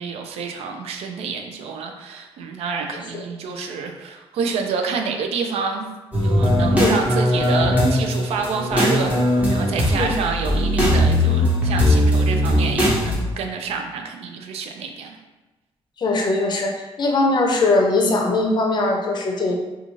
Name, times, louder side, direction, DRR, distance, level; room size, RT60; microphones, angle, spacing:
voice 1, 0.0-5.9 6.2-9.2 9.5-15.2, right 5 dB, 90° right, 4 dB, 0.4 m, -28 dB
sound 1, 6.1-13.1, equal, 15° right, 0.9 m, -19 dB
voice 2, 16.0-16.7 17.0-19.5, left 2 dB, 45° left, 1 dB, 0.5 m, -20 dB
2.5 x 2.3 x 3.0 m, 1.1 s
cardioid pair, 105°, 10 cm